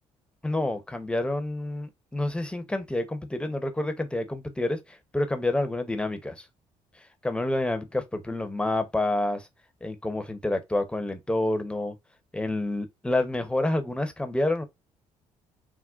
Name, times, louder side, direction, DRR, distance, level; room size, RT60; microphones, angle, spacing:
voice 1, 0.4-6.4 7.2-9.5 9.8-11.9 12.3-14.6, left 2 dB, 5° left, 0.7 m, -28 dB
3.7 x 2.1 x 2.4 m
hypercardioid pair, 60°, 14 cm